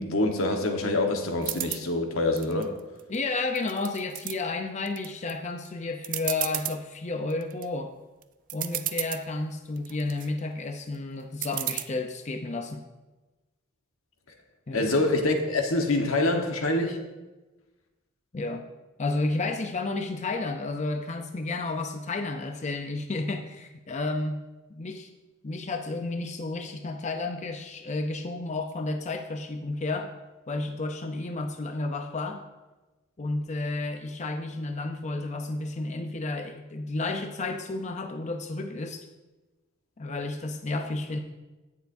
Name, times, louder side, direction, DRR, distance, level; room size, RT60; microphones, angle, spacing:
voice 1, 0.0-2.7 14.7-17.0, left 2 dB, 85° left, 1.3 m, -25 dB
sound 1, 1.4-1.8 2.4-3.2 3.6-4.4 4.9-5.3 5.7-5.8 6.0-6.8 7.3-7.7 8.2-8.3 8.5-9.2 9.8-10.3 11.4-11.8, right 13 dB, 40° right, 0.4 m, -32 dB
voice 2, 3.1-7.9 8.5-12.8 14.7-14.9 18.3-18.6 19.0-24.4 24.7-25.1 25.4-30.1 30.5-32.4 33.2-39.1 40.0-41.2, left 2 dB, 35° left, 0.5 m, -31 dB
16.5 x 7.0 x 2.7 m
head